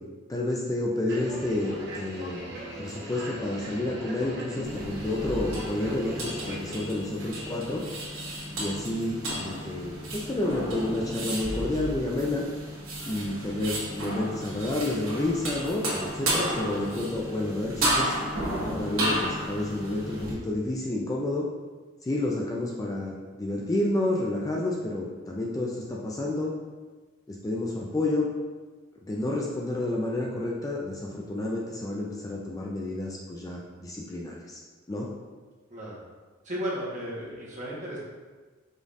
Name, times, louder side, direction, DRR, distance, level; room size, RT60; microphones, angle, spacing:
voice 1, 0.3-2.4 2.8-7.8 8.6-12.5 13.0-18.2 18.7-21.4 22.0-26.5 27.3-28.3 29.0-34.6 34.9-35.1, left 2 dB, 15° left, -2 dB, 0.4 m, -30 dB
sound 1, 1.1-6.8, right 1 dB, 55° right, 1.0 m, -39 dB
sound 2, 4.6-20.3, right 1 dB, 75° right, 1.3 m, -33 dB
voice 2, 35.7-36.0 36.4-38.0, equal, 40° right, -7 dB, 1.3 m, -34 dB
5.1 x 3.8 x 2.6 m, 1.4 s
head